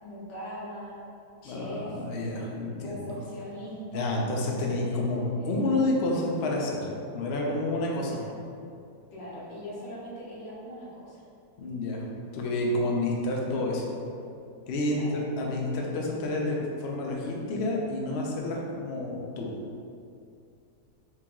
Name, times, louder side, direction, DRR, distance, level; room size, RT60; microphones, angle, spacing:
voice 1, 0.0-1.0 1.4-2.0 2.8-4.2 4.6-5.7 7.9-8.4 9.1-11.2 14.9-15.1, equal, 85° left, -7 dB, 1.7 m, -40 dB
voice 2, 1.4-3.0 3.9-6.9 7.1-8.2 11.6-12.0 12.3-13.8 14.7-19.5, left 2 dB, 65° left, -2 dB, 0.6 m, -29 dB
4.6 x 2.9 x 3.6 m, 2.5 s
omnidirectional pair, 1.8 m